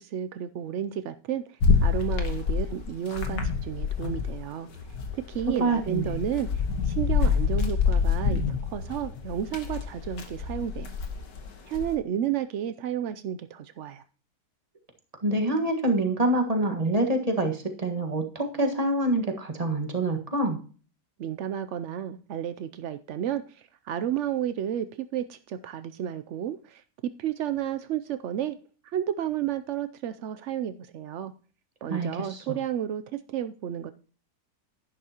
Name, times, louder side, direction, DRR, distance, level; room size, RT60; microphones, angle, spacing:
voice 1, 0.0-4.7 5.1-10.9 11.7-14.0 21.2-28.6 28.8-31.3 31.8-33.9, right 10 dB, 80° right, 11 dB, 0.6 m, -32 dB
sound 1, 1.6-4.4 4.7-11.9, left 5 dB, 85° left, 2.1 m, -27 dB
voice 2, 5.6-6.2 15.2-20.6 31.9-32.4, right 1 dB, 20° right, 3 dB, 1.5 m, -26 dB
11.0 x 10.5 x 2.9 m, 0.39 s
omnidirectional pair, 1.8 m